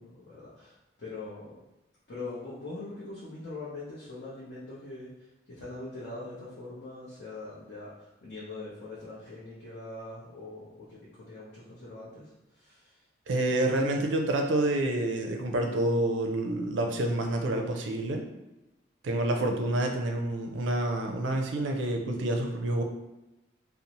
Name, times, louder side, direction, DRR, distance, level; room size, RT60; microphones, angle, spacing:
voice 1, 0.0-1.6 2.1-13.0, left 2 dB, 60° left, -9 dB, 0.7 m, -42 dB
voice 2, 13.3-18.2 19.0-22.8, right 1 dB, 80° right, 3 dB, 0.4 m, -28 dB
2.6 x 2.0 x 2.9 m, 0.96 s
head